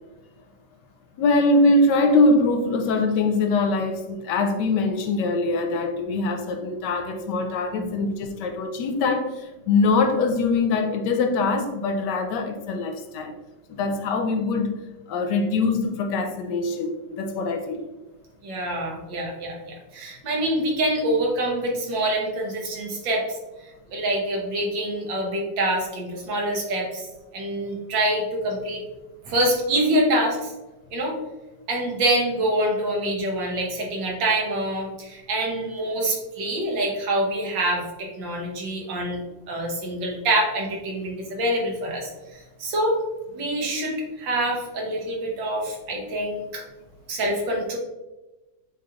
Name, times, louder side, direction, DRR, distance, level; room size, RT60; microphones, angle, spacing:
voice 1, 1.2-13.3 13.7-14.8 15.1-17.8, left 3 dB, 75° left, 6 dB, 1.2 m, -23 dB
voice 2, 18.4-23.4 23.9-27.1 27.3-28.8 29.3-30.5 30.9-31.2 31.7-39.2 39.5-43.0 43.3-46.6 47.1-47.8, right 1 dB, 85° right, -1 dB, 1.8 m, -26 dB
7.3 x 3.1 x 2.4 m, 1.1 s
omnidirectional pair, 2.0 m